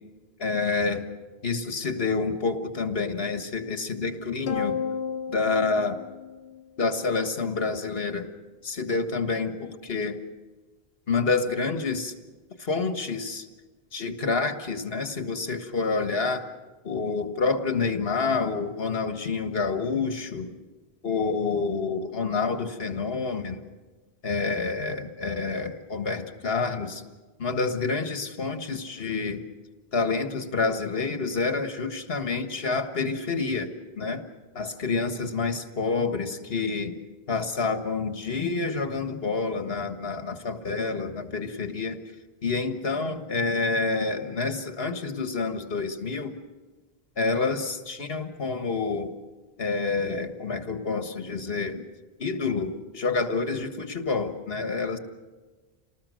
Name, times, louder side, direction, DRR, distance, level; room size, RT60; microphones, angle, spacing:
voice 1, 0.4-1.1 1.4-4.8 5.3-6.0 6.8-8.3 8.6-10.2 11.1-12.1 12.6-13.5 13.9-16.5 16.8-20.6 21.0-23.6 24.2-27.0 27.4-29.4 29.9-34.2 34.5-37.0 37.3-42.0 42.4-46.3 47.2-49.1 49.6-51.8 52.2-55.0, left 4 dB, 70° left, 7 dB, 1.8 m, -28 dB
sound 1, 4.5-7.1, left 6 dB, 90° left, 1.3 m, -33 dB
28.5 x 19.5 x 6.5 m, 1.3 s
omnidirectional pair, 1.0 m